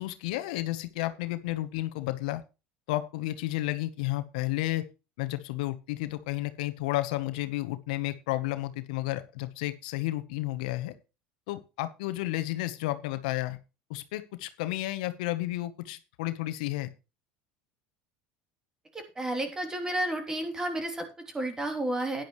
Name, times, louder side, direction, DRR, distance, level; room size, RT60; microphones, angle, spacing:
voice 1, 0.0-2.4 2.9-4.9 5.2-10.9 11.5-13.6 13.9-16.9, left 17 dB, 85° left, 11 dB, 1.0 m, -32 dB
voice 2, 18.9-22.2, right 1 dB, 15° right, 5 dB, 3.2 m, -32 dB
12.0 x 10.5 x 3.1 m, 0.29 s
supercardioid pair, 110°, 4 cm